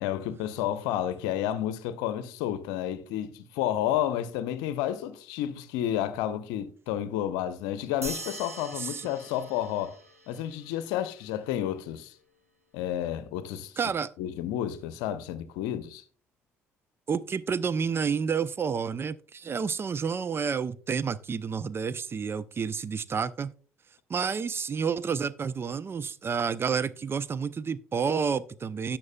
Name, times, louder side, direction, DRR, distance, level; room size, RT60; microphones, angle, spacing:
voice 1, 0.0-10.0 10.3-12.1 12.7-13.7 14.2-16.0, left 11 dB, 65° left, 0.7 m, -31 dB
sound 1, 8.0-10.8, right 2 dB, 90° right, 1.1 m, -42 dB
voice 2, 8.8-9.1 13.8-14.1 17.1-23.5 24.1-29.0, right 6 dB, 30° right, 0.5 m, -30 dB
17.0 x 5.8 x 2.2 m
figure-of-eight pair, 50°, 8 cm